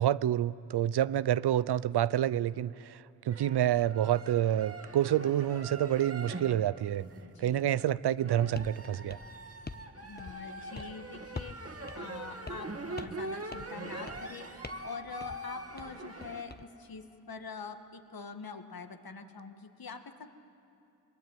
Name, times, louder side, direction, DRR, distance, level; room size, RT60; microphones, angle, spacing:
voice 1, 0.0-7.1 7.4-9.2, right 11 dB, 75° right, 0.6 m, -28 dB
sound 1, 3.3-7.9 8.2-16.4, right 2 dB, 35° right, 2.6 m, -43 dB
sound 2, 8.6-8.8 9.1-9.9 10.2-10.5 10.7-10.9 11.4-11.6 11.9-12.0 12.5-12.7 13.0-13.2 13.5-13.8 14.1-14.3 14.6-14.9 15.2-15.4 15.8-16.6, left 3 dB, 25° left, 1.1 m, -44 dB
voice 2, 10.0-11.6 11.9-14.5 14.8-20.3, left 5 dB, 60° left, 1.9 m, -44 dB
23.5 x 19.5 x 9.2 m
supercardioid pair, 40°, 40 cm